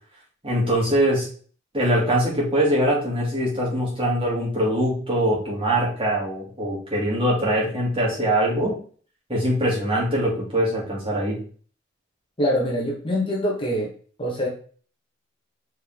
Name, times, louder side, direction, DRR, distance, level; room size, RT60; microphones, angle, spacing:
voice 1, 0.4-1.3 1.7-8.7 9.3-11.4, right 1 dB, 30° right, -5 dB, 3.4 m, -22 dB
voice 2, 12.4-13.9 14.2-14.5, equal, 25° left, -3 dB, 1.8 m, -24 dB
5.7 x 5.4 x 3.9 m, 0.43 s
head